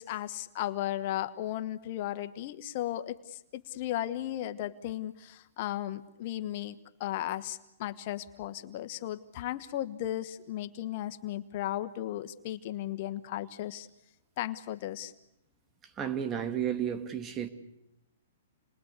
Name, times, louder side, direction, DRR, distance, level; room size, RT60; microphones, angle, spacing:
voice 1, 0.0-13.9 14.4-15.1, left 13 dB, 45° left, 1.3 m, -35 dB
voice 2, 16.0-17.5, right 9 dB, 20° right, 2.4 m, -32 dB
29.5 x 21.5 x 8.2 m
hypercardioid pair, 140°, 0 cm